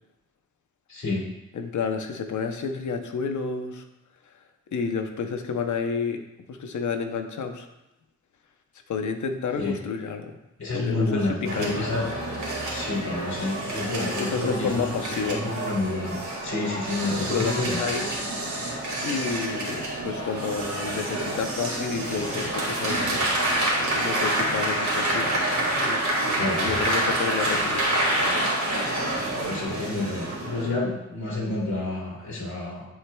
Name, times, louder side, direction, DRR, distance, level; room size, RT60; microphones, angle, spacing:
voice 1, 0.9-1.2 9.6-9.7 10.6-12.1 12.7-16.2 16.4-17.8 26.3-26.7 29.5-32.9, left 2 dB, 70° left, -5 dB, 2.5 m, -29 dB
voice 2, 1.5-3.9 4.7-6.2 6.5-7.7 8.9-10.4 10.7-11.9 14.2-15.4 17.3-18.1 19.0-23.2 23.9-25.4 25.8-28.0, left 5 dB, 85° left, 6 dB, 0.7 m, -30 dB
sound 1, 11.5-30.7, right 1 dB, 75° right, 2.0 m, -27 dB
11.0 x 4.7 x 2.2 m, 0.93 s
wide cardioid pair, 80°, 29 cm